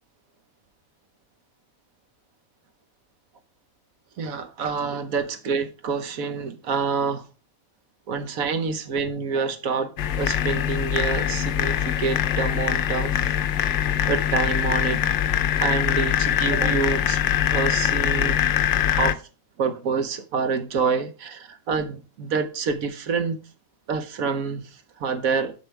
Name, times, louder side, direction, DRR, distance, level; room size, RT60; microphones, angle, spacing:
voice 1, 4.2-7.3 8.1-13.3 13.8-15.0 15.6-17.2 17.5-18.4 19.0-19.2 19.6-23.4 23.9-25.5, right 5 dB, 85° right, 1.4 m, -27 dB
sound 1, 10.0-19.1, left 10 dB, 65° left, 0.8 m, -23 dB
8.2 x 6.4 x 3.3 m
omnidirectional pair, 1.4 m